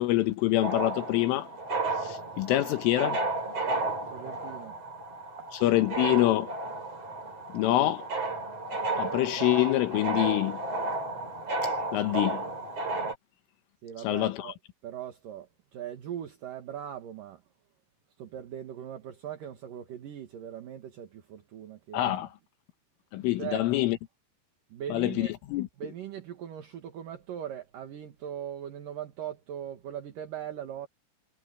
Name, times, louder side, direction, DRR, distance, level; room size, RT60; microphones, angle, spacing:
voice 1, 0.0-1.5 2.0-3.2 5.6-6.5 7.5-8.1 9.0-10.6 11.6-12.5 14.0-14.5 21.9-22.3 23.1-24.0 24.9-25.7, left 16 dB, 80° left, 3.6 m, -26 dB
sound 1, 0.6-13.1, right 2 dB, 30° right, 5.7 m, -33 dB
voice 2, 4.1-4.8 5.1-5.5 13.8-14.6 14.8-17.4 18.2-22.2 23.4-23.6 24.7-25.3 25.8-30.9, right 10 dB, 60° right, 2.5 m, -40 dB
omnidirectional pair, 6.0 m